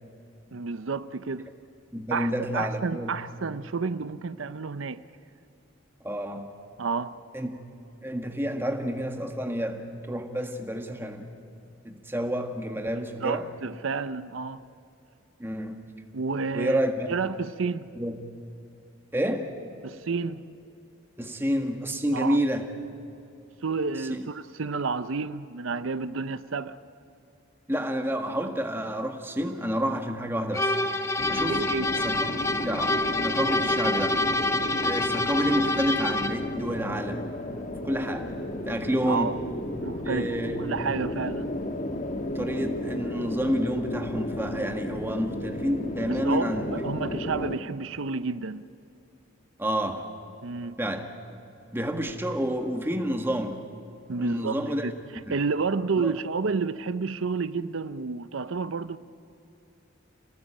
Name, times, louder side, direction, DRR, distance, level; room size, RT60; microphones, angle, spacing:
voice 1, 0.5-1.5 2.1-5.0 6.8-7.2 13.2-14.6 16.1-16.8 17.1-17.9 19.8-20.4 22.1-22.4 23.6-26.8 31.5-31.9 39.1-39.4 39.8-41.5 46.1-48.6 50.4-50.8 54.1-54.6 54.8-54.9 55.3-59.0, right 4 dB, 80° right, 0.6 m, -30 dB
voice 2, 1.9-3.1 6.0-6.5 7.3-7.6 8.0-11.3 11.8-13.5 15.4-15.9 16.5-17.1 17.9-18.2 19.1-19.5 21.2-22.7 24.0-24.3 27.7-30.7 31.3-31.6 32.0-32.3 32.6-33.0 33.2-34.2 34.8-37.3 37.8-38.3 38.6-39.4 40.0-40.7 42.3-47.3 49.6-50.1 50.8-51.1 51.7-53.6 54.2-54.9 55.2-55.4 56.0-56.2, equal, 10° right, 1.7 m, -29 dB
sound 1, 30.5-36.5, left 2 dB, 15° left, 0.9 m, -27 dB
sound 2, 31.2-47.6, left 1 dB, 40° left, 1.3 m, -33 dB
28.5 x 18.5 x 8.9 m
head